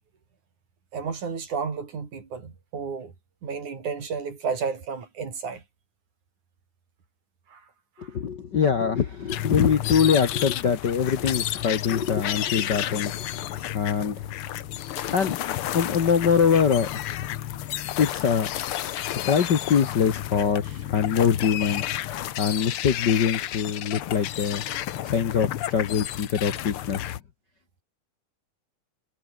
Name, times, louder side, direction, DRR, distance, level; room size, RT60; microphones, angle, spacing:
voice 1, 0.9-3.1 3.4-5.6 7.5-7.7 8.0-8.1, right 5 dB, 65° right, 5.4 m, -32 dB
voice 2, 8.0-13.4 13.7-14.1 15.1-16.9 18.0-18.5 19.2-21.8 22.4-24.6 25.0-27.1, left 7 dB, 50° left, 1.3 m, -23 dB
sound 1, 9.3-27.2, left 12 dB, 75° left, 1.2 m, -31 dB
omnidirectional pair, 3.8 m